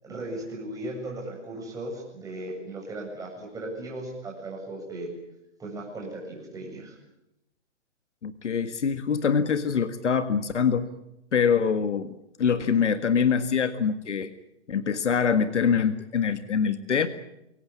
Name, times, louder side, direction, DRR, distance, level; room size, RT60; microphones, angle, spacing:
voice 1, 0.0-5.1 5.6-7.0, right 1 dB, 10° right, -1 dB, 7.8 m, -37 dB
voice 2, 8.2-10.9 11.3-12.1 12.4-14.3 14.7-17.1, left 6 dB, 75° left, 11 dB, 1.8 m, -24 dB
23.0 x 18.5 x 9.8 m, 0.87 s
hypercardioid pair, 145°, 36 cm